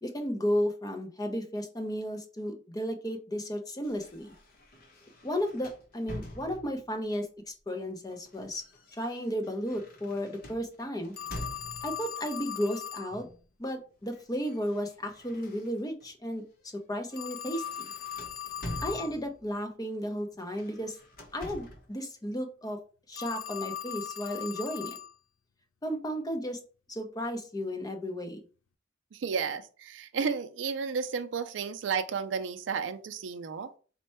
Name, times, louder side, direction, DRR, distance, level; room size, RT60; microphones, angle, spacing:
voice 1, 0.0-4.3 5.2-8.6 8.9-11.1 11.8-13.3 13.6-16.4 16.9-17.9 18.8-21.0 21.3-22.8 23.1-25.0 25.8-26.6 26.9-28.4, equal, 20° left, 5 dB, 0.6 m, -34 dB
sound 1, 3.8-6.9 7.9-12.1 13.1-13.5 13.8-16.1 16.5-16.7 17.1-19.5 20.4-21.9, left 1 dB, 50° left, 0.9 m, -46 dB
Telephone, 11.2-13.1 17.1-19.1 23.1-25.1, left 9 dB, 90° left, 0.4 m, -39 dB
voice 2, 29.1-33.7, right 6 dB, 70° right, 8 dB, 0.4 m, -32 dB
4.3 x 2.2 x 4.3 m, 0.39 s
head